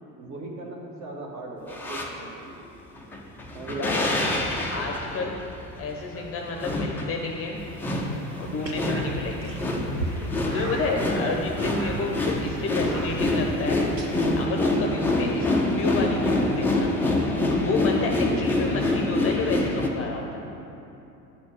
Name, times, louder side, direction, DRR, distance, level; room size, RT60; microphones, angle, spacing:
voice 1, 0.2-2.7 3.5-4.0 8.6-9.0 10.4-11.4 17.9-18.4, right 2 dB, 35° right, -2 dB, 1.6 m, -39 dB
sound 1, 1.7-2.1 3.0-19.9, left 2 dB, 5° left, 0.3 m, -26 dB
voice 2, 3.8-4.1 4.6-5.4 5.8-7.6 8.4-9.5 10.5-13.9 14.3-16.9 17.6-20.4, left 3 dB, 30° left, 2 dB, 0.7 m, -30 dB
sound 2, 7.6-14.4, right 1 dB, 90° right, 0.8 m, -38 dB
sound 3, 8.8-9.6 10.5-10.9 11.6-12.0 12.8-13.3, right 3 dB, 70° right, 1.2 m, -40 dB
9.1 x 4.3 x 7.1 m, 2.9 s
figure-of-eight pair, 70°, 49 cm